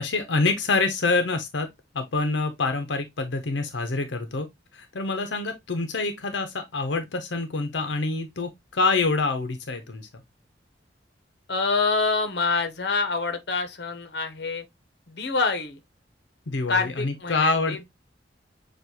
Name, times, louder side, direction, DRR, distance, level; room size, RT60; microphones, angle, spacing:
voice 1, 0.0-1.7 1.9-4.5 4.7-10.1 16.5-17.8, left 3 dB, 90° left, 0.8 m, -26 dB
voice 2, 11.5-14.7 15.1-15.8 16.7-17.8, left 4 dB, 65° left, 0.9 m, -26 dB
6.8 x 2.5 x 2.9 m
head